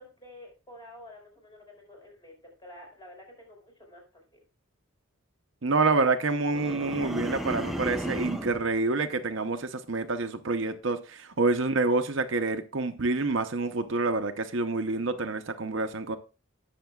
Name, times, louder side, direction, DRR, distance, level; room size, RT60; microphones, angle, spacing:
voice 1, 0.0-4.4, left 1 dB, 20° left, 4.7 m, -50 dB
voice 2, 5.6-16.2, right 3 dB, 60° right, 0.8 m, -27 dB
sound 1, 6.5-8.6, equal, ahead, 0.7 m, -33 dB
18.5 x 6.6 x 2.3 m
head